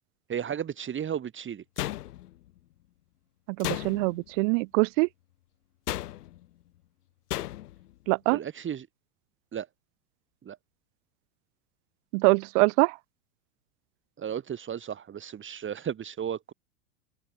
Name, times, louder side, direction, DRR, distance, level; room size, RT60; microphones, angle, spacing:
voice 1, 0.3-1.6 8.3-8.9 9.5-9.7 10.4-10.6 14.2-16.5, right 9 dB, 25° right, 3.6 m, -34 dB
sound 1, 1.8-2.5 3.6-4.3 5.9-6.4 7.3-7.8, left 14 dB, 70° left, 3.1 m, -34 dB
voice 2, 3.6-5.1 8.1-8.4 12.1-13.0, right 29 dB, 50° right, 1.0 m, -24 dB
open air
hypercardioid pair, 105°, 49 cm